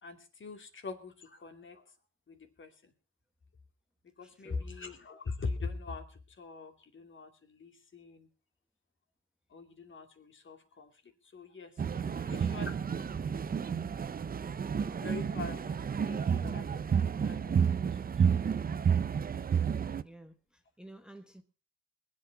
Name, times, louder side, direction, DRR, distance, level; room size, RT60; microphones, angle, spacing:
voice 1, 0.0-1.8 2.3-2.9 4.0-8.3 9.5-12.9 14.8-18.3, left 4 dB, 40° left, 2.6 m, -43 dB
voice 2, 4.2-4.7 20.0-21.4, right 1 dB, 5° right, 1.1 m, -52 dB
sound 1, 11.8-20.0, right 7 dB, 30° right, 0.7 m, -31 dB
21.0 x 8.4 x 5.8 m
cardioid pair, 90°, 30 cm